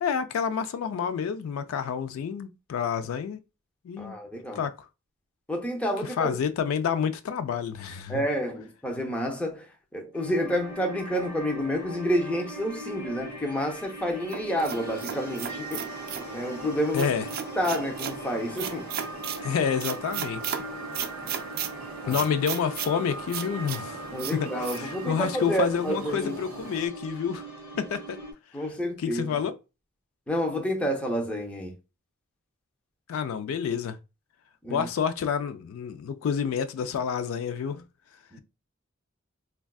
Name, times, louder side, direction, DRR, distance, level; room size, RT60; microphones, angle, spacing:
voice 1, 0.0-3.4 3.8-4.2 4.6-4.7 6.2-8.2 16.9-17.3 19.4-20.6 22.1-24.0 24.3-27.4 27.8-28.2 29.0-29.5 33.1-34.0 34.7-37.8, left 7 dB, 70° left, 0.3 m, -29 dB
voice 2, 4.0-4.6 5.5-6.4 8.1-9.7 9.9-15.8 16.3-17.1 17.6-18.9 22.0-22.2 24.1-26.4 28.5-29.4 30.3-31.8 34.6-34.9 38.3-38.4, equal, 5° left, 0.5 m, -29 dB
sound 1, 10.1-28.3, right 1 dB, 50° left, 1.0 m, -41 dB
sound 2, 14.3-16.3 17.0-18.2 18.6-19.4 19.8-20.6 20.9-21.7 22.1-22.9 23.3-23.8 24.2-24.4 24.6-24.8, right 9 dB, 45° right, 0.3 m, -34 dB
sound 3, 14.6-26.9, right 3 dB, 80° right, 0.7 m, -41 dB
3.4 x 2.3 x 2.2 m
head